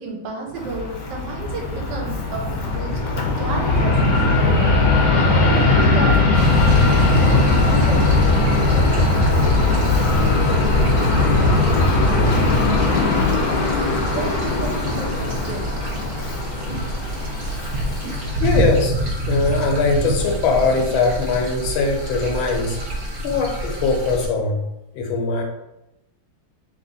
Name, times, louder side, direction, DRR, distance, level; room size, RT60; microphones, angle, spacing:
voice 1, 0.0-4.8 5.1-11.6 12.0-13.2 13.5-15.8, right 3 dB, 70° right, 0 dB, 1.4 m, -33 dB
Fixed-wing aircraft airplane, 0.6-18.4, left 2 dB, 60° left, 1.0 m, -19 dB
sound 1, 6.3-24.3, right 2 dB, 50° right, 1.2 m, -28 dB
voice 2, 18.4-23.0 23.2-24.6 24.9-25.4, left 4 dB, 85° left, 2 dB, 1.6 m, -21 dB
3.3 x 3.0 x 3.9 m, 0.89 s
omnidirectional pair, 2.1 m